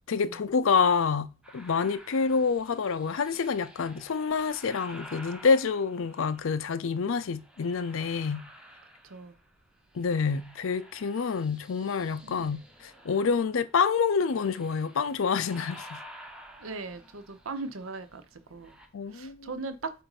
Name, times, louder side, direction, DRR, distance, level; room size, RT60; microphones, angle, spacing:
voice 1, 0.1-8.5 9.9-16.0 18.9-19.5, left 5 dB, 70° left, 0.5 m, -27 dB
sound 1, 1.4-6.8 7.3-9.5 9.8-18.9, equal, 5° right, 0.7 m, -51 dB
voice 2, 9.0-9.3 12.2-12.5 16.6-18.8 19.1-19.9, right 3 dB, 80° right, 0.7 m, -39 dB
7.6 x 2.6 x 4.8 m
head